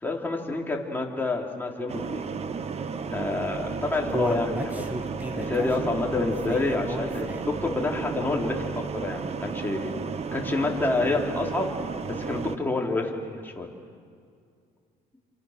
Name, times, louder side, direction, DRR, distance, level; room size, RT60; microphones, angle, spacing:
voice 1, 0.0-2.3 3.1-5.0 5.3-9.9 10.3-11.7 12.1-13.7, left 3 dB, 10° left, -1 dB, 3.8 m, -28 dB
sound 1, 1.9-12.6, right 5 dB, 40° right, 1.2 m, -33 dB
Human voice, 3.6-7.7 8.1-8.2 8.6-8.7, equal, 10° right, 2.1 m, -33 dB
29.0 x 26.5 x 6.8 m, 2.2 s
cardioid pair, 110°, 17 cm